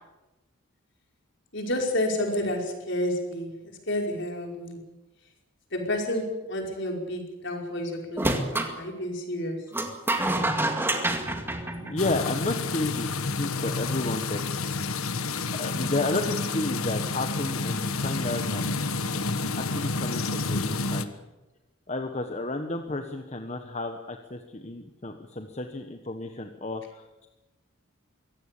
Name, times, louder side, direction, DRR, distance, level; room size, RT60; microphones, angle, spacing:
voice 1, 1.5-4.8 5.7-9.7, left 1 dB, 55° left, 2 dB, 5.2 m, -30 dB
sound 1, 8.2-8.7 9.7-12.4, right 1 dB, 10° right, 2.1 m, -27 dB
voice 2, 11.8-14.4 15.5-18.7 19.5-21.1 21.9-27.3, left 2 dB, 30° left, 5 dB, 1.3 m, -32 dB
sound 2, 12.0-21.0, left 3 dB, 85° left, 1.4 m, -29 dB
23.0 x 17.5 x 8.5 m, 1.1 s
head